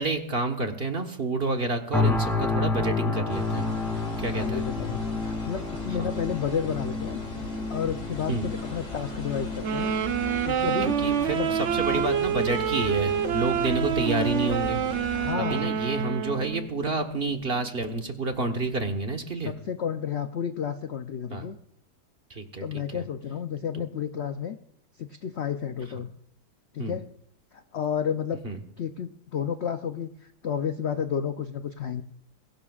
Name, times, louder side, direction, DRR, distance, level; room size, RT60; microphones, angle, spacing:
voice 1, 0.0-3.7 4.2-4.6 6.0-6.2 8.3-8.5 11.0-14.8 15.0-19.5 21.3-21.5 22.3-23.1 26.8-27.0 28.4-28.6, right 2 dB, 35° right, 5 dB, 1.3 m, -29 dB
sound 1, 1.9-16.9 17.4-17.6, left 3 dB, ahead, 2.4 m, -32 dB
sound 2, 3.3-15.3, left 1 dB, 40° left, 3.4 m, -39 dB
voice 2, 4.3-7.2 7.7-9.9 10.4-11.0 11.3-11.5 11.8-12.0 13.8-13.9 15.1-15.7 19.4-21.6 22.6-24.6 25.0-26.1 26.7-27.1 27.5-28.4 28.8-32.0, left 8 dB, 65° left, 8 dB, 0.6 m, -31 dB
sound 3, 9.6-16.7, right 9 dB, 55° right, 0.8 m, -27 dB
22.5 x 16.5 x 2.4 m, 0.72 s
omnidirectional pair, 1.9 m